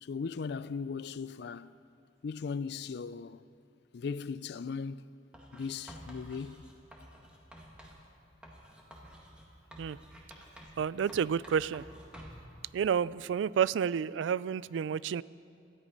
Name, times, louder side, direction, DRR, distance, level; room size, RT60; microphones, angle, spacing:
voice 1, 0.0-1.7 2.2-3.4 3.9-5.1 5.5-6.7, left 5 dB, 60° left, 0.4 m, -38 dB
Writing, 5.3-8.0 8.4-10.8 11.1-12.5, equal, 5° right, 1.8 m, -51 dB
voice 2, 10.8-11.8 12.7-15.2, right 7 dB, 80° right, 0.3 m, -30 dB
18.0 x 13.0 x 5.4 m
head